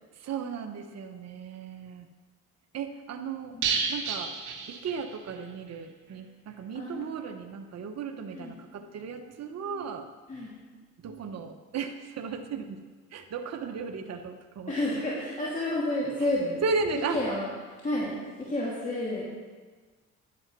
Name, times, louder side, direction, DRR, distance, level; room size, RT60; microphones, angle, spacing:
voice 1, 0.1-2.1 2.7-3.6 3.9-4.3 4.7-10.1 11.0-12.8 13.1-14.7 16.2-16.3 16.6-17.2, right 5 dB, 60° right, 5 dB, 1.0 m, -35 dB
sound 1, 3.6-5.4 5.7-5.8 6.1-6.2, right 5 dB, 75° right, 2.2 m, -31 dB
voice 2, 6.7-7.1 8.3-8.6 10.3-10.6 14.7-16.6 17.1-19.2, left 1 dB, 25° left, -6 dB, 2.6 m, -30 dB
11.0 x 8.8 x 6.1 m, 1.4 s
cardioid pair, 90°, 30 cm